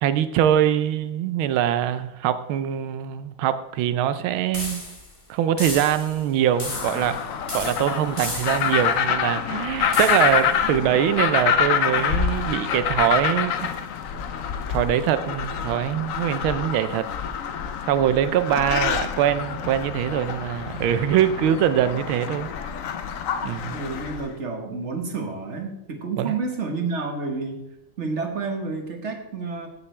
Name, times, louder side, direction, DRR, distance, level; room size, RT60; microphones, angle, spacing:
voice 1, 0.0-4.8 5.3-7.2 7.5-13.5 14.7-17.1 17.8-22.5 23.4-23.8 26.2-26.3, right 10 dB, 85° right, 12 dB, 1.5 m, -23 dB
sound 1, 4.5-5.1 5.6-6.2 6.6-7.2 7.5-8.8 9.9-10.4, left 1 dB, 15° left, 1.7 m, -34 dB
sound 2, 6.5-24.3, left 7 dB, 80° left, 0.7 m, -26 dB
voice 2, 23.7-27.6 28.0-29.7, right 4 dB, 40° right, 4 dB, 1.4 m, -29 dB
15.5 x 6.7 x 3.3 m, 0.87 s
omnidirectional pair, 2.2 m